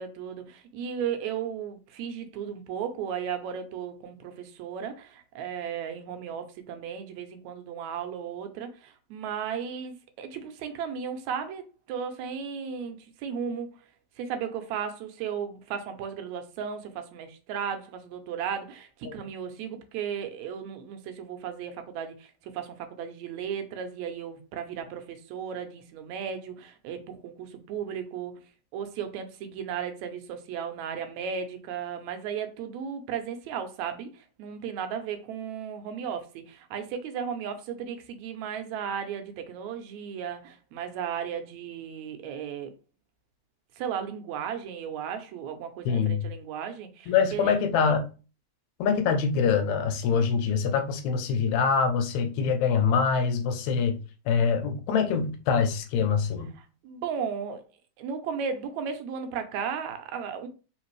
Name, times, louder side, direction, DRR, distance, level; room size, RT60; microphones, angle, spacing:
voice 1, 0.0-13.7 14.2-28.3 28.7-42.7 43.8-47.6 56.5-57.6 58.0-60.5, right 7 dB, 80° right, 2.0 m, -35 dB
voice 2, 45.9-46.2 47.1-48.1 48.8-54.0 54.3-56.5, left 6 dB, 80° left, 2.0 m, -24 dB
4.3 x 3.3 x 3.1 m
omnidirectional pair, 3.3 m